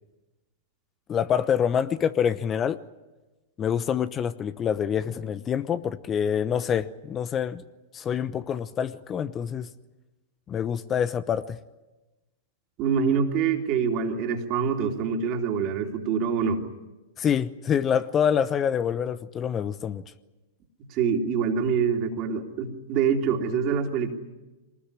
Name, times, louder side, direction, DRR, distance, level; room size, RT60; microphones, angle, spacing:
voice 1, 1.1-2.8 3.6-7.6 7.9-9.7 10.5-11.6 17.2-20.0, left 8 dB, 25° left, 14 dB, 0.9 m, -26 dB
voice 2, 12.8-16.6 20.9-24.1, right 6 dB, 45° right, 3 dB, 3.3 m, -25 dB
23.5 x 19.5 x 9.9 m, 1.1 s
hypercardioid pair, 105°, 0 cm